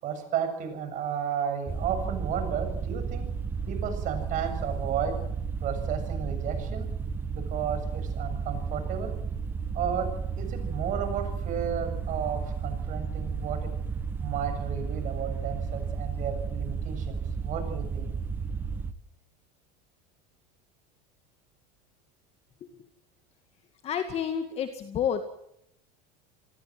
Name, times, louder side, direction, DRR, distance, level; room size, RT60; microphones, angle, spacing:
voice 1, 0.0-3.3 3.7-5.2 5.6-6.9 7.3-9.1 9.7-10.1 10.4-13.7 14.2-18.1, right 8 dB, 40° right, 8 dB, 7.4 m, -33 dB
sound 1, 1.7-18.9, right 5 dB, 10° right, 1.4 m, -33 dB
voice 2, 23.8-25.2, left 8 dB, 30° left, 8 dB, 2.1 m, -29 dB
29.0 x 20.0 x 7.7 m, 0.76 s
cardioid pair, 155°, 20 cm